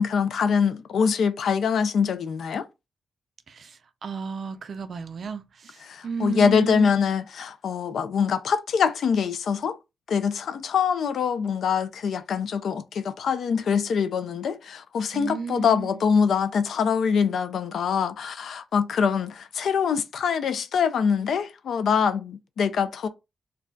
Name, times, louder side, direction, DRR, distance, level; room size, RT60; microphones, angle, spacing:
voice 1, 0.0-2.6 5.9-9.8 10.1-23.1, left 6 dB, 75° left, 0.4 m, -24 dB
voice 2, 3.5-6.9 15.1-16.0, right 5 dB, 50° right, 0.4 m, -34 dB
2.2 x 2.2 x 3.7 m
wide cardioid pair, 150°, 0 cm